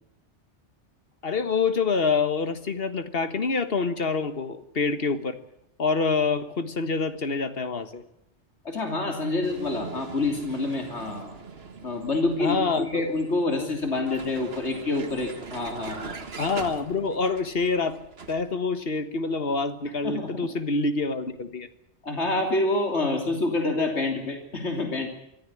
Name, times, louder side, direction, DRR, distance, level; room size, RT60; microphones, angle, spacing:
voice 1, 1.2-5.4 5.8-8.0 12.4-13.1 16.4-18.0 18.3-21.7, left 4 dB, 55° left, 11 dB, 1.7 m, -26 dB
voice 2, 8.7-11.3 11.8-16.2 20.0-20.5 22.0-25.1, left 2 dB, 75° left, 3 dB, 3.5 m, -27 dB
Vehicle, 9.4-18.5, right 5 dB, 60° right, 1.7 m, -42 dB
23.5 x 14.5 x 9.9 m, 0.77 s
omnidirectional pair, 1.2 m